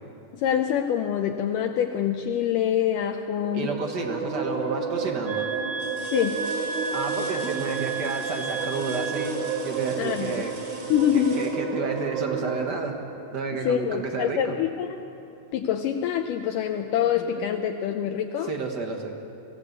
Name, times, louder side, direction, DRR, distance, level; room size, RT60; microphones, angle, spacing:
voice 1, 0.3-3.7 6.1-6.5 10.0-10.4 10.9-11.4 13.7-14.9 15.5-18.5, left 9 dB, 75° left, 5 dB, 2.2 m, -25 dB
sound 1, 3.3-12.7, right 5 dB, 70° right, 1.2 m, -31 dB
voice 2, 3.5-5.5 6.9-9.3 9.6-10.5 11.1-13.0 13.3-14.6 18.5-19.2, right 4 dB, 50° right, 3 dB, 1.3 m, -31 dB
sound 2, 5.2-9.5, right 4 dB, 30° left, 1.2 m, -33 dB
sound 3, 5.7-12.4 14.2-14.3 14.8-15.8 17.2-17.3, right 2 dB, 35° right, 4.1 m, -46 dB
22.5 x 15.5 x 8.1 m, 2.7 s
omnidirectional pair, 4.0 m